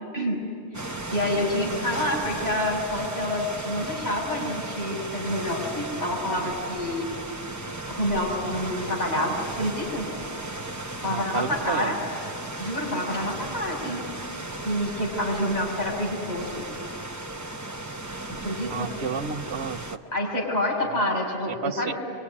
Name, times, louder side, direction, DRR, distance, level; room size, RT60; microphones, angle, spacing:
voice 1, 0.7-7.1 7.9-10.1 11.0-12.0 12.6-14.0 14.6-16.6 18.3-18.9 20.0-21.9, left 1 dB, 40° left, -3 dB, 6.4 m, -28 dB
sound 1, 0.7-20.0, right 2 dB, 15° right, 1.0 m, -35 dB
voice 2, 1.3-2.1 11.0-12.0 18.7-20.0 21.6-21.9, right 6 dB, 70° right, 9 dB, 1.1 m, -32 dB
25.0 x 24.0 x 9.8 m, 2.3 s
omnidirectional pair, 1.1 m